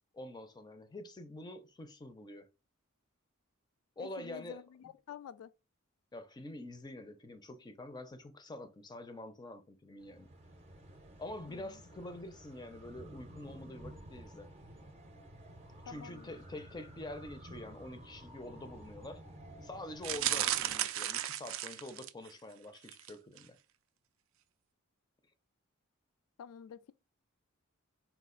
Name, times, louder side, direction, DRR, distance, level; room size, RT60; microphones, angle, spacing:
voice 1, 0.1-2.5 4.0-4.9 6.1-10.3 11.2-14.5 15.9-19.2 19.6-23.6, left 1 dB, 20° left, 0.5 m, -46 dB
voice 2, 4.0-5.5 11.5-11.8 15.8-16.4 26.4-26.9, left 8 dB, 85° left, 0.3 m, -49 dB
sound 1, 10.0-20.3, right 1 dB, 30° right, 0.6 m, -52 dB
sound 2, 20.0-22.3 22.8-23.1 23.4-23.5, right 12 dB, 65° right, 0.4 m, -34 dB
4.2 x 2.4 x 3.7 m
head